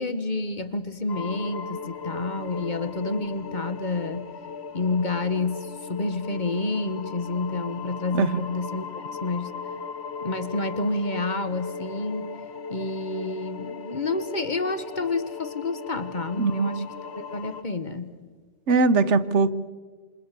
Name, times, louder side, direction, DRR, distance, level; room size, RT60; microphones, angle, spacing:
voice 1, 0.0-4.3 4.7-9.5 10.2-12.3 12.7-18.1, left 3 dB, 40° left, 12 dB, 1.5 m, -29 dB
sound 1, 1.1-17.6, left 5 dB, 60° left, 1.3 m, -37 dB
voice 2, 16.4-16.9 18.7-19.5, right 4 dB, 75° right, 15 dB, 1.3 m, -21 dB
28.5 x 27.0 x 6.8 m, 1.4 s
omnidirectional pair, 1.2 m